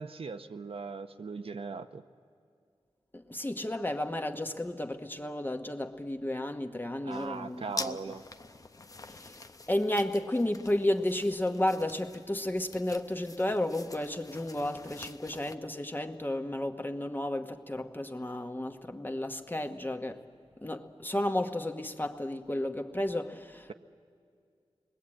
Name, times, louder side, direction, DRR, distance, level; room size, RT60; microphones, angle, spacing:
voice 1, 0.0-2.0 7.0-8.2, right 4 dB, 70° right, 0.8 m, -39 dB
voice 2, 3.1-8.0 9.1-9.4 9.7-20.2 20.6-23.7, left 1 dB, 20° left, 1.2 m, -32 dB
sound 1, 7.1-15.6, left 3 dB, 35° left, 0.7 m, -46 dB
29.0 x 21.0 x 8.7 m
wide cardioid pair, 95°, 10 cm